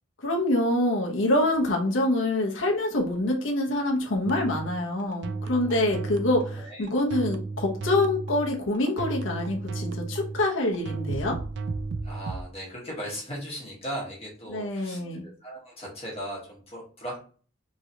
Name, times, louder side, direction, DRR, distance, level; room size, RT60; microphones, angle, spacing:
voice 1, 0.2-11.4 14.5-15.2, left 1 dB, 80° left, 0 dB, 0.8 m, -26 dB
sound 1, 4.2-12.4, right 3 dB, 60° right, 0.3 m, -34 dB
voice 2, 6.6-6.9 12.0-17.2, equal, 30° left, -4 dB, 1.2 m, -37 dB
3.0 x 2.8 x 2.7 m, 0.42 s
head